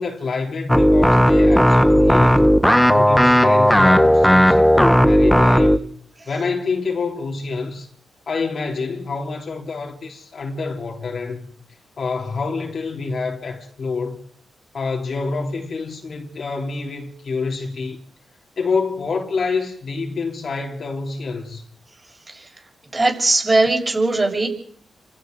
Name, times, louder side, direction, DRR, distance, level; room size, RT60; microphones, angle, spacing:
voice 1, 0.0-2.5 2.9-5.9 6.3-7.9 8.3-11.5 12.0-14.2 14.7-18.0 18.6-21.6, left 4 dB, 55° left, 3.3 m, -27 dB
sound 1, 0.7-5.8, equal, 5° left, 0.8 m, -14 dB
voice 2, 22.9-24.5, right 2 dB, 25° right, 6.4 m, -18 dB
30.0 x 16.0 x 5.4 m
cardioid pair, 95°, 0 cm